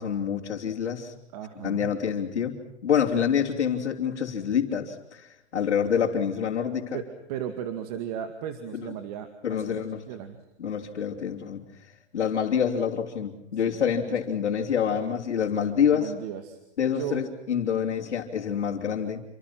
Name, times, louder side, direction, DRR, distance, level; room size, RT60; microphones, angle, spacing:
voice 1, 0.0-1.1 1.6-7.0 8.7-8.9 9.4-10.0 10.6-11.6 12.1-16.1 16.8-19.2, left 8 dB, 85° left, -3 dB, 3.8 m, -27 dB
voice 2, 1.3-2.0 6.9-10.4 13.5-13.8 14.1-14.2 15.9-16.6 16.9-17.2, right 9 dB, 35° right, 8 dB, 2.2 m, -36 dB
28.0 x 25.5 x 6.1 m, 0.82 s
hypercardioid pair, 155°, 34 cm